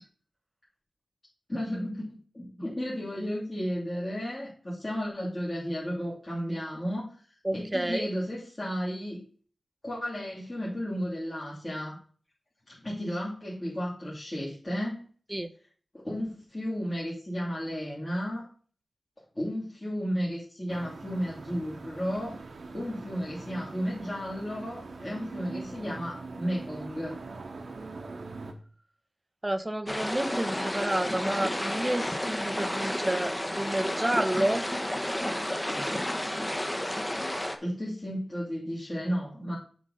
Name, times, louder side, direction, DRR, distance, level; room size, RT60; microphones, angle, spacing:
voice 1, 1.5-7.1 7.5-9.2 9.8-12.0 12.7-15.1 15.9-18.5 19.3-22.4 22.7-27.1 37.6-39.6, equal, 30° left, -7 dB, 3.0 m, -33 dB
voice 2, 7.4-8.1 15.3-15.5 29.4-34.7, right 1 dB, 20° right, 13 dB, 0.7 m, -30 dB
sound 1, 20.7-28.5, right 3 dB, 80° right, 1.1 m, -42 dB
sound 2, 29.9-37.6, left 1 dB, 15° left, 1.1 m, -31 dB
7.3 x 4.0 x 6.5 m, 0.43 s
wide cardioid pair, 60°, 0 cm